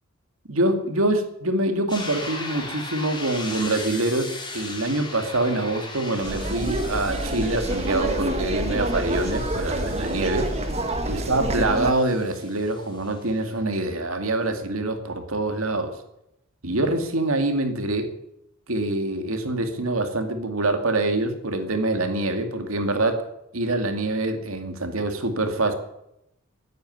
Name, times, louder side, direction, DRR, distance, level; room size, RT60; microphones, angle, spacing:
voice 1, 0.5-10.5 11.1-16.0 16.6-18.1 18.7-23.3 23.5-25.7, right 2 dB, 80° right, 7 dB, 2.3 m, -25 dB
sound 1, 1.9-13.6, left 3 dB, 20° left, 3.6 m, -39 dB
sound 2, 6.2-11.9, right 1 dB, 30° right, 1.4 m, -27 dB
15.5 x 9.2 x 9.4 m, 0.82 s
head